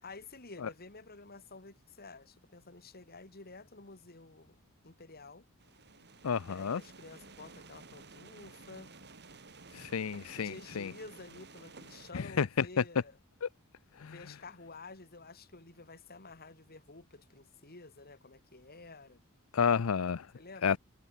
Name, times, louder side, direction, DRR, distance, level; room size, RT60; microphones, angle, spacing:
voice 1, 0.0-4.6 4.8-5.5 6.5-8.9 10.4-13.2 14.0-19.2 20.3-20.8, left 3 dB, 45° left, 3.2 m, -51 dB
sound 1, 5.6-12.1, right 3 dB, 55° right, 6.6 m, -53 dB
voice 2, 6.2-6.8 9.7-10.9 12.1-12.8 13.4-13.5 14.0-14.2 19.5-20.3 20.6-20.8, left 6 dB, 75° left, 0.5 m, -31 dB
head